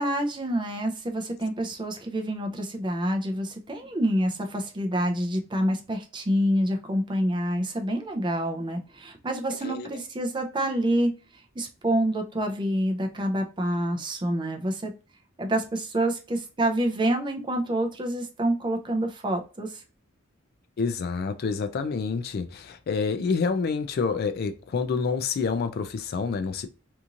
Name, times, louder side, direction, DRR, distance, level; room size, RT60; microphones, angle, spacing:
voice 1, 0.0-11.1 11.6-14.9 15.4-19.8, right 1 dB, 25° right, 0.5 m, -27 dB
voice 2, 9.6-10.0 20.8-26.7, left 5 dB, 50° left, 0.3 m, -28 dB
2.9 x 2.6 x 2.4 m
head